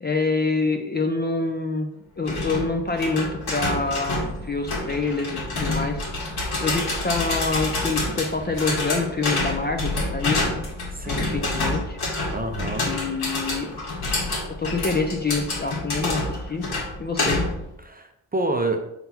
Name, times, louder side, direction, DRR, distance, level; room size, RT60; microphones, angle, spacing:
voice 1, 0.0-1.9 2.2-6.0 6.6-10.4 11.1-12.0 12.8-13.8 14.6-16.6 17.0-17.4, left 3 dB, 25° left, 4 dB, 0.5 m, -26 dB
sound 1, 2.3-17.7, left 2 dB, 60° left, 1.9 m, -28 dB
voice 2, 10.9-11.6 12.3-13.2 17.8-18.8, right 2 dB, 20° right, 5 dB, 0.6 m, -28 dB
5.5 x 3.9 x 4.3 m, 0.81 s
cardioid pair, 115°, 43 cm